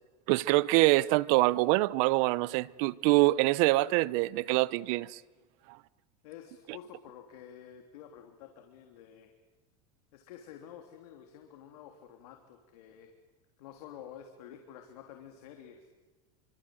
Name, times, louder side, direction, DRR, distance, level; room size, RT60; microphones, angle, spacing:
voice 1, 0.3-5.2, right 20 dB, 65° right, 0.9 m, -25 dB
voice 2, 6.2-9.3 10.1-13.1 13.6-15.9, left 9 dB, 80° left, 3.4 m, -50 dB
29.5 x 25.0 x 7.9 m
supercardioid pair, 130°, 19 cm